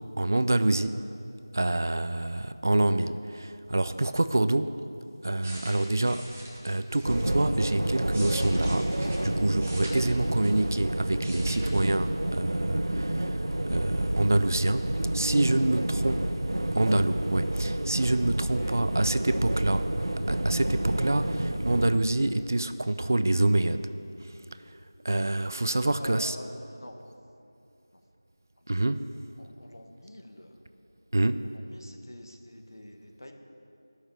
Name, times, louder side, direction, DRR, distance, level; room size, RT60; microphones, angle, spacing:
voice 1, 0.2-1.0 1.5-4.8 5.2-6.3 6.6-8.9 9.2-13.4 13.7-16.1 16.7-19.9 20.3-23.9 25.0-26.4 28.7-29.1 31.1-31.5, right 2 dB, 45° right, 12 dB, 0.4 m, -27 dB
sound 1, 5.2-7.4 7.9-10.8 11.1-11.9 12.1-12.4, right 1 dB, 20° right, 1.1 m, -43 dB
sound 2, 7.0-21.9, right 1 dB, 80° right, 0.9 m, -29 dB
voice 2, 15.9-16.3 18.6-18.8 26.0-27.0 27.9-28.0 28.6-28.7 29.4-30.6 31.4-33.3, left 1 dB, 65° left, 4 dB, 1.4 m, -46 dB
12.0 x 6.5 x 7.3 m, 2.7 s
figure-of-eight pair, 175°, 2 cm